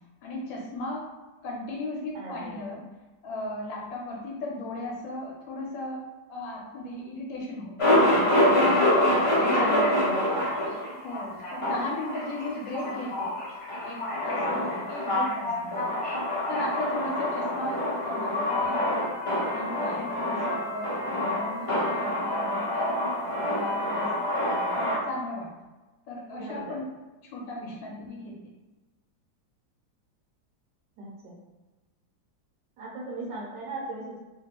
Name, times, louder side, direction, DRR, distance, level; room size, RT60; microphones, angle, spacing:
voice 1, 0.2-1.1 1.4-2.8 3.2-7.9 8.6-9.0 9.4-10.0 10.9-13.4 13.8-16.0 16.5-19.1 19.4-24.2 24.7-25.5 26.1-26.9 27.3-28.4, left 2 dB, 80° left, -1 dB, 1.3 m, -36 dB
voice 2, 2.1-2.6 9.5-10.6 26.3-26.8 27.6-27.7 31.0-31.3 32.8-34.2, right 1 dB, 75° right, -6 dB, 1.3 m, -35 dB
Male speech man speaking, 7.8-25.0, left 1 dB, 35° left, 0.5 m, -26 dB
3.2 x 2.5 x 2.9 m, 1.2 s
omnidirectional pair, 2.1 m